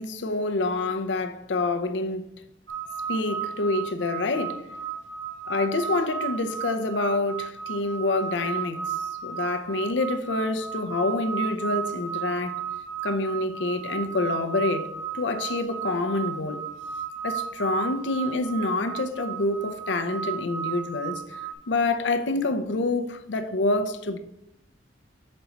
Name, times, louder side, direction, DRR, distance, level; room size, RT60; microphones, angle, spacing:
voice 1, 0.0-2.2 3.1-4.6 5.5-8.9 9.2-12.6 13.0-14.9 15.1-16.6 17.2-21.2 21.7-24.2, left 2 dB, 90° left, 0.6 m, -27 dB
sound 1, 2.7-21.5, right 7 dB, 80° right, 1.5 m, -34 dB
5.3 x 4.1 x 5.8 m
head